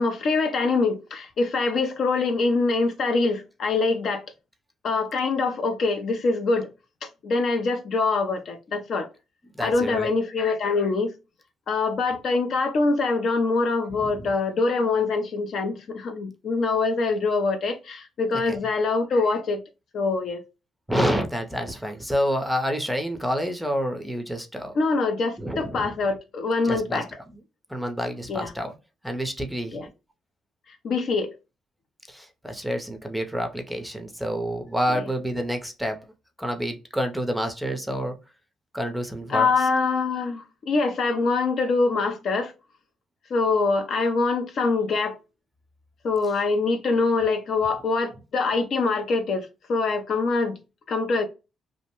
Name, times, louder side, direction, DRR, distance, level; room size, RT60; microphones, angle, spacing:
voice 1, 0.0-4.2 4.8-6.7 7.0-9.1 9.6-11.1 11.7-19.6 19.9-20.4 24.7-27.1 28.3-28.5 29.7-29.9 30.8-31.3 34.9-35.1 39.3-42.5 43.3-45.2 46.0-50.6 50.9-51.3, left 3 dB, 60° left, 0.5 m, -24 dB
voice 2, 9.6-10.1 13.9-14.3 18.5-18.6 20.9-24.7 25.4-25.9 26.6-27.4 27.7-28.7 29.0-29.9 32.1-36.1 36.4-38.2 38.7-39.5, equal, ahead, 0.5 m, -28 dB
2.6 x 2.0 x 2.9 m
cardioid pair, 90°, 0 cm